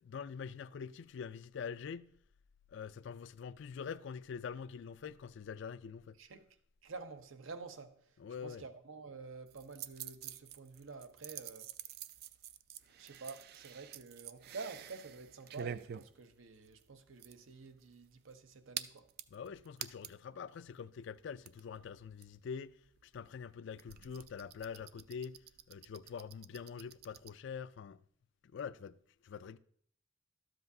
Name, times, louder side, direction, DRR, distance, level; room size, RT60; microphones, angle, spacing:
voice 1, 0.0-2.1 2.7-6.1 8.2-8.6 19.3-22.8 23.0-25.4 25.7-28.0 28.4-29.0 29.2-29.6, left 6 dB, 60° left, 0.3 m, -45 dB
voice 2, 6.8-8.2 8.4-11.7 13.0-19.1, right 4 dB, 80° right, 0.8 m, -49 dB
sound 1, 9.5-20.3 20.7-20.8 21.0-27.3, right 9 dB, 50° right, 0.3 m, -49 dB
12.5 x 7.7 x 2.7 m
head